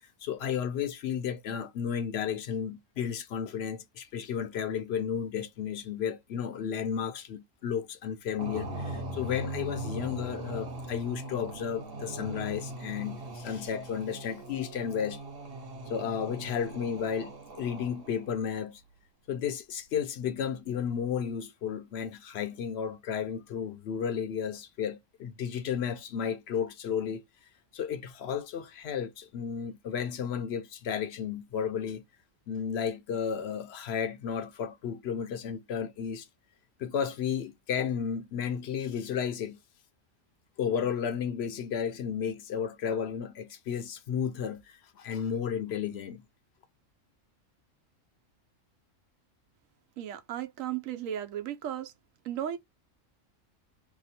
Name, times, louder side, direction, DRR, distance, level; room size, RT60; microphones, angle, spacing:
voice 1, 0.2-15.2 15.9-18.8 19.3-27.2 27.7-32.0 32.5-36.3 36.8-39.6 40.6-46.2, left 7 dB, 60° left, 0.8 m, -33 dB
sound 1, 8.4-18.3, right 1 dB, 50° right, 1.1 m, -40 dB
voice 2, 50.0-51.9 52.2-52.6, right 10 dB, 90° right, 1.0 m, -35 dB
2.9 x 2.1 x 4.1 m
omnidirectional pair, 1.4 m